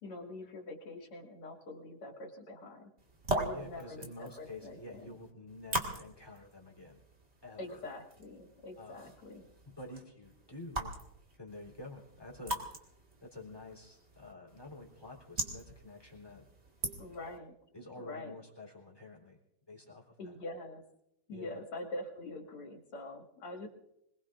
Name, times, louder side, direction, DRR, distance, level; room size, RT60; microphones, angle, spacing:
voice 1, 0.0-2.8 3.3-5.2 7.6-9.5 17.0-17.5 18.0-18.3 20.2-20.8 21.3-23.7, left 2 dB, 80° left, -1 dB, 3.1 m, -44 dB
sound 1, 3.0-17.4, right 2 dB, 30° right, 2.1 m, -42 dB
voice 2, 3.5-7.0 7.4-7.8 8.8-9.1 9.6-10.9 11.4-12.9 13.2-16.4 17.7-19.4 19.7-20.4 21.3-21.6, left 2 dB, 10° left, -2 dB, 3.4 m, -49 dB
26.0 x 20.0 x 2.5 m, 0.82 s
omnidirectional pair, 2.4 m